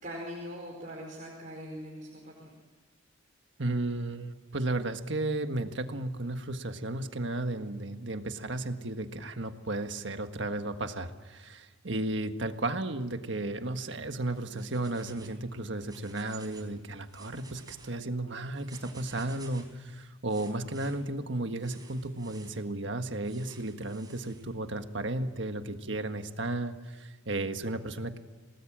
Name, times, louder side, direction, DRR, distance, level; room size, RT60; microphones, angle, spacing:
voice 1, 0.0-2.5 27.6-27.7, equal, 40° right, -2 dB, 4.9 m, -42 dB
voice 2, 3.6-28.2, right 2 dB, 65° right, 7 dB, 1.6 m, -34 dB
sound 1, 14.3-15.4 15.7-16.7 17.0-17.9 18.5-19.8 20.3-20.9 21.6-22.6 23.2-24.4, right 4 dB, 20° right, 4.7 m, -53 dB
27.5 x 19.0 x 7.6 m, 1.3 s
head